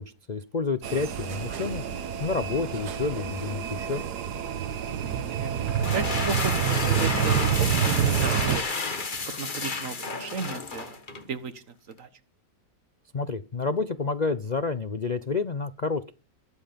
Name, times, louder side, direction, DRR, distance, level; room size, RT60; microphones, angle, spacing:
voice 1, 0.0-1.8 2.2-4.0 13.1-16.1, left 4 dB, 55° left, 12 dB, 0.4 m, -29 dB
sound 1, 0.8-8.6, right 9 dB, 70° right, 1.6 m, -28 dB
voice 2, 4.9-8.6 9.4-11.0 11.3-11.6 12.0-12.1, right 5 dB, 50° right, 12 dB, 1.6 m, -34 dB
sound 2, 5.7-11.3, left 4 dB, 30° left, 1.6 m, -31 dB
22.0 x 8.0 x 5.2 m, 0.33 s
omnidirectional pair, 1.9 m